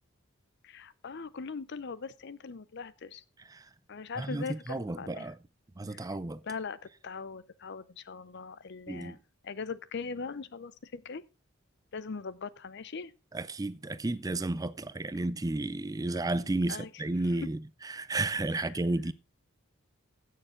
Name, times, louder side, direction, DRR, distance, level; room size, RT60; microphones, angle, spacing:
voice 1, 0.6-3.2 3.9-5.3 5.9-6.1 6.4-9.2 9.4-11.2 11.9-13.1 16.7-17.0 18.5-18.8, left 5 dB, 55° left, 0.6 m, -40 dB
voice 2, 4.2-5.4 5.8-6.4 8.9-9.2 13.3-17.6 17.8-19.1, right 2 dB, 15° right, 0.4 m, -32 dB
16.0 x 6.6 x 3.8 m
head